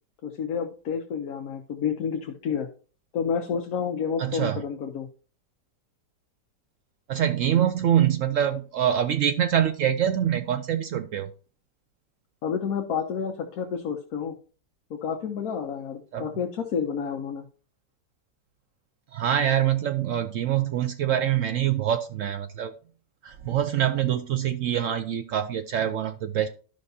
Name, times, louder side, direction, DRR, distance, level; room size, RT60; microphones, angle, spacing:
voice 1, 0.2-2.7 3.1-5.1 12.4-14.3 14.9-17.4, left 7 dB, 65° left, 1.2 m, -30 dB
voice 2, 4.2-4.6 7.1-11.3 16.1-16.3 19.1-22.7 23.2-26.5, right 10 dB, 70° right, 0.7 m, -25 dB
12.0 x 5.6 x 2.7 m
omnidirectional pair, 1.8 m